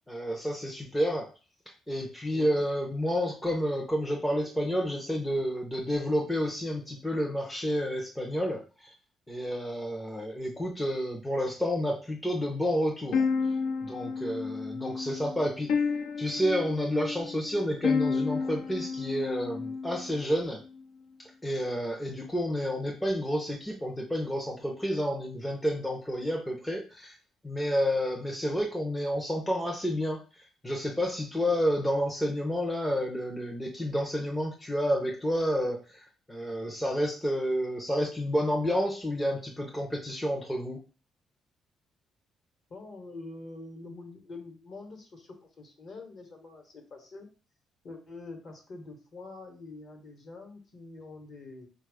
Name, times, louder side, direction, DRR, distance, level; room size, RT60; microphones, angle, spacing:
voice 1, 0.1-1.3 1.9-8.9 9.3-13.2 13.8-15.9 16.2-20.6 21.2-27.1 27.4-40.8, equal, 5° left, -1 dB, 0.5 m, -30 dB
voice 2, 2.3-2.6 42.7-47.3 47.8-51.7, left 3 dB, 40° left, 4 dB, 1.0 m, -45 dB
sound 1, 13.1-20.2, left 5 dB, 75° left, 0.5 m, -31 dB
4.4 x 2.3 x 4.7 m, 0.35 s
cardioid pair, 180°, 0 cm